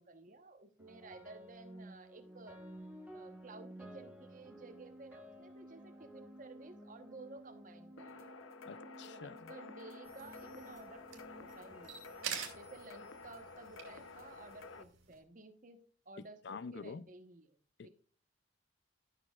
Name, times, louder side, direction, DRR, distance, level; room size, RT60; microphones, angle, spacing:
voice 1, 0.0-2.6 3.1-8.3 9.0-12.0 12.5-15.8 16.0-17.6 17.8-17.9, right 2 dB, 40° right, 1.0 m, -54 dB
sound 1, 0.8-13.1, equal, 5° right, 1.2 m, -54 dB
sound 2, 8.0-14.8, left 3 dB, 90° left, 0.7 m, -52 dB
voice 2, 8.7-9.3 16.4-17.0, left 5 dB, 55° left, 0.4 m, -46 dB
sound 3, 10.0-15.2, right 7 dB, 85° right, 2.6 m, -48 dB
13.5 x 6.4 x 2.4 m
head